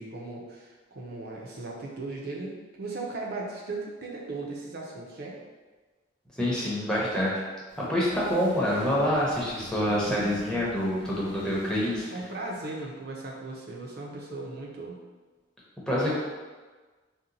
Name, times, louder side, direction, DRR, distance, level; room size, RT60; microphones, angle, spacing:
voice 1, 0.0-5.4 12.1-15.0 16.0-16.1, right 2 dB, 50° right, -2 dB, 0.5 m, -37 dB
voice 2, 6.4-7.3 7.8-12.1 15.9-16.1, equal, 5° left, -7 dB, 0.6 m, -26 dB
sound 1, 7.5-12.8, left 1 dB, 60° left, 0.8 m, -44 dB
2.7 x 2.2 x 3.8 m, 1.3 s
head